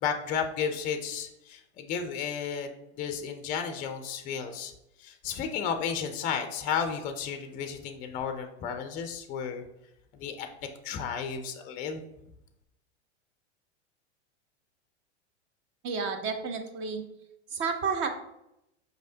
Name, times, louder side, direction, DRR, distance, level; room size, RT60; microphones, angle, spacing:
voice 1, 0.0-2.7 3.0-4.7 5.0-9.6 10.1-10.5 10.8-12.0, left 7 dB, 25° left, 7 dB, 0.4 m, -33 dB
voice 2, 15.8-17.0 17.5-18.1, right 5 dB, 35° right, 6 dB, 0.6 m, -31 dB
5.0 x 3.1 x 2.7 m, 0.83 s
hypercardioid pair, 105°, 35 cm